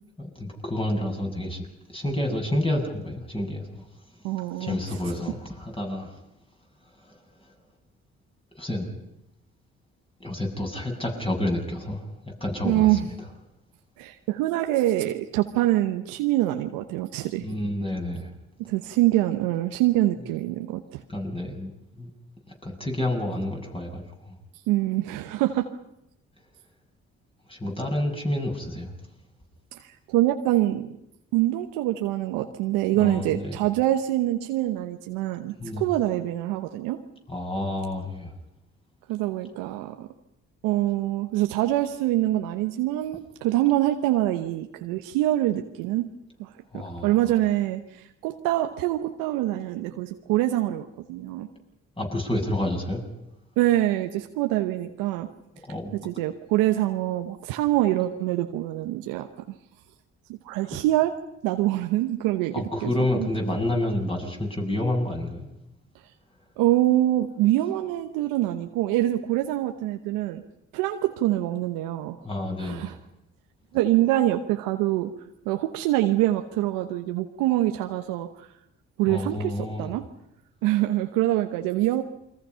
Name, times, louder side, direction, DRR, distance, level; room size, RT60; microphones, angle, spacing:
voice 1, 0.2-3.8 4.6-6.1 8.6-8.9 10.2-13.2 17.4-18.3 21.1-22.1 22.6-24.3 27.5-28.9 32.9-33.6 35.6-35.8 37.3-38.3 46.7-47.1 52.0-53.0 55.7-55.9 62.5-65.5 72.2-72.9 79.1-79.9, left 1 dB, 15° left, 1 dB, 7.9 m, -29 dB
voice 2, 4.2-5.0 12.6-13.1 14.0-17.4 18.6-21.0 24.7-25.7 29.8-30.9 31.3-37.0 39.1-40.1 40.6-46.1 46.4-51.5 53.6-55.3 56.0-59.6 60.4-61.1 61.4-63.3 66.6-70.4 70.7-72.2 72.6-73.0 73.7-75.1 75.4-78.5 79.0-80.1 80.6-82.0, right 15 dB, 85° right, 6 dB, 1.0 m, -25 dB
28.5 x 23.0 x 5.7 m, 0.82 s
hypercardioid pair, 50°, 33 cm